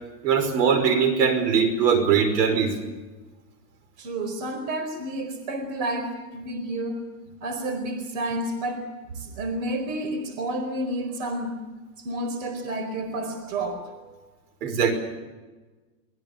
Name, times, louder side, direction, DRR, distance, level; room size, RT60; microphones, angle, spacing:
voice 1, 0.2-2.8 14.6-14.9, right 6 dB, 75° right, 9 dB, 5.4 m, -21 dB
voice 2, 4.0-7.1 7.4-8.9 9.1-11.7 12.0-14.1, right 1 dB, 60° right, 7 dB, 4.6 m, -30 dB
24.5 x 21.5 x 6.9 m, 1.3 s
supercardioid pair, 145°, 48 cm